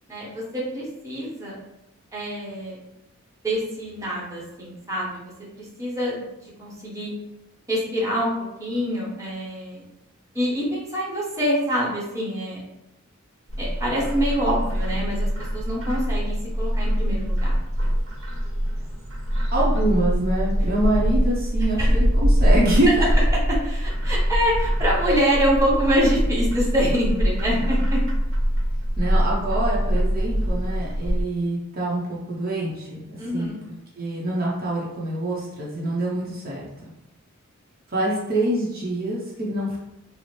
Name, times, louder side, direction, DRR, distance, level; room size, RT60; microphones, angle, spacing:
voice 1, 0.1-1.6 2.1-2.8 3.4-7.1 7.7-8.3 8.6-9.8 10.3-12.6 13.6-17.6 21.8-21.9 23.5-28.0 33.2-33.6, equal, 15° right, -5 dB, 0.9 m, -26 dB
Bird, 13.5-31.2, equal, 80° right, 1.0 m, -23 dB
voice 2, 19.5-23.1 29.0-33.5 34.0-36.6 37.9-39.8, right 1 dB, 45° right, -5 dB, 0.7 m, -25 dB
4.1 x 2.0 x 3.1 m, 0.90 s
head